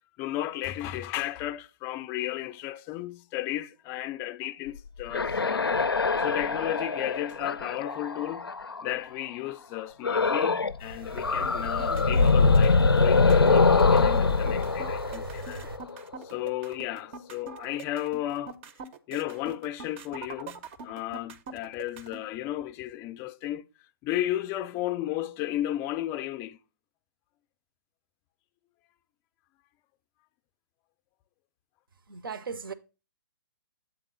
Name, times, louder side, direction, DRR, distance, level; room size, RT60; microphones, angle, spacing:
voice 1, 0.2-5.7 6.2-8.5 8.8-15.6 16.2-18.6 19.1-23.7 24.0-26.6, left 14 dB, 20° left, 0.4 m, -34 dB
sound 1, 4.8-8.9 10.0-10.8 11.1-15.9, left 4 dB, 85° left, 0.4 m, -23 dB
sound 2, 10.8-15.8, right 3 dB, 90° right, 1.2 m, -41 dB
sound 3, 11.6-22.2, right 4 dB, 30° right, 0.5 m, -43 dB
voice 2, 32.1-32.7, right 5 dB, 70° right, 0.7 m, -37 dB
7.8 x 3.6 x 5.3 m
figure-of-eight pair, 125°, 12 cm